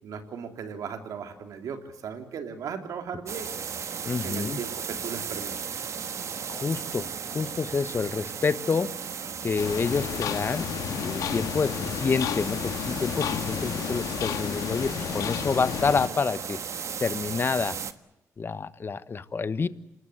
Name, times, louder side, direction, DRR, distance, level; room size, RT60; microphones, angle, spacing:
voice 1, 0.0-3.7 4.2-5.6, right 6 dB, 80° right, 6 dB, 3.4 m, -37 dB
sound 1, 3.3-17.9, right 7 dB, 60° right, 1.4 m, -36 dB
voice 2, 4.0-4.6 6.5-8.9 9.4-16.6 17.0-17.8 18.4-19.7, left 5 dB, 40° left, 14 dB, 1.2 m, -28 dB
sound 2, 9.6-16.1, left 8 dB, 85° left, 1.8 m, -31 dB
28.0 x 19.5 x 8.1 m, 0.90 s
cardioid pair, 80°, 6 cm